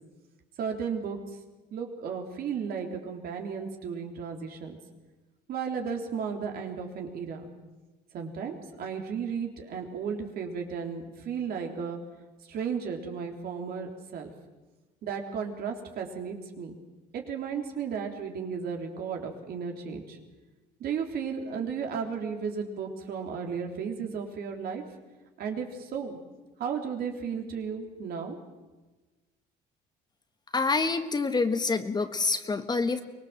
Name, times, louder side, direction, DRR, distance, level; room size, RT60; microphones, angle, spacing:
voice 1, 0.6-1.2 1.7-4.8 5.5-7.5 8.1-12.0 12.5-14.3 15.0-16.7 17.1-20.2 20.8-24.8 25.4-26.2 26.6-28.4, right 6 dB, 65° right, 3 dB, 3.7 m, -34 dB
voice 2, 30.5-33.0, left 4 dB, 25° left, 9 dB, 1.5 m, -27 dB
24.5 x 20.0 x 7.5 m, 1.2 s
cardioid pair, 110°, 17 cm